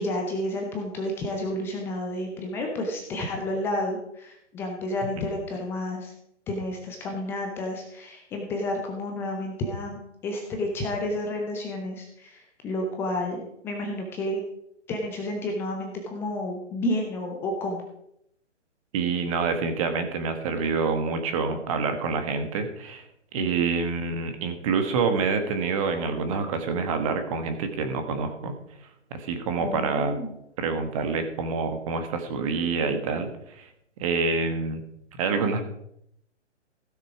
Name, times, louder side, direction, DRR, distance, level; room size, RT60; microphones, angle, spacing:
voice 1, 0.0-6.1 6.5-14.4 14.9-17.8 23.4-23.5 29.6-30.4, left 1 dB, 5° left, 2 dB, 0.6 m, -31 dB
voice 2, 18.9-23.0 23.3-28.6 29.1-30.2 30.6-33.7 34.0-34.8 35.2-35.6, right 4 dB, 30° right, 8 dB, 1.5 m, -27 dB
15.5 x 6.6 x 4.9 m, 0.76 s
figure-of-eight pair, 140°, 36 cm